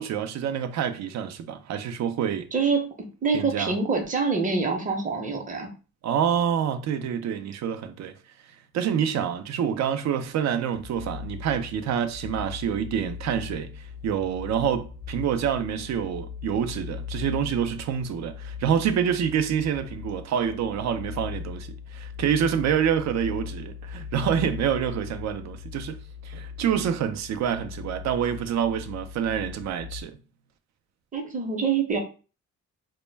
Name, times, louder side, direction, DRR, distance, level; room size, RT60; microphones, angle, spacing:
voice 1, 0.0-2.5 3.3-3.7 6.0-8.1 8.7-26.0 26.2-30.2, right 8 dB, 65° right, 0.5 m, -27 dB
voice 2, 2.5-2.9 3.2-5.7 31.1-32.0, right 4 dB, 25° right, 0.7 m, -25 dB
sound 1, 10.7-30.0, left 7 dB, 20° left, 0.4 m, -39 dB
2.1 x 2.1 x 3.2 m
cardioid pair, 90°, 30 cm